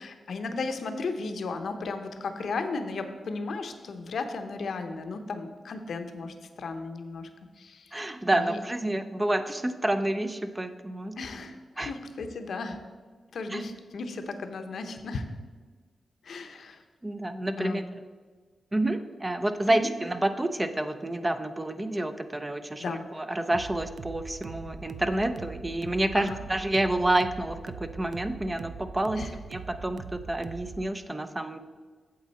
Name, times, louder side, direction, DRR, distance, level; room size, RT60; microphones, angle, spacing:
voice 1, 0.0-7.3 7.6-8.1 8.3-8.6 11.2-12.8 13.3-15.3 16.2-16.8 17.6-17.8 19.7-19.9 22.8-23.0 26.1-26.5 29.1-29.4, left 3 dB, 70° left, 7 dB, 0.8 m, -35 dB
voice 2, 7.9-11.2 11.8-11.9 13.5-13.6 17.0-17.8 18.7-22.8 23.1-29.2 29.5-31.6, right 1 dB, 15° right, 9 dB, 0.5 m, -29 dB
sound 1, 23.5-30.9, right 5 dB, 80° right, 0.3 m, -42 dB
8.6 x 7.3 x 4.2 m, 1.5 s
wide cardioid pair, 105°, 0 cm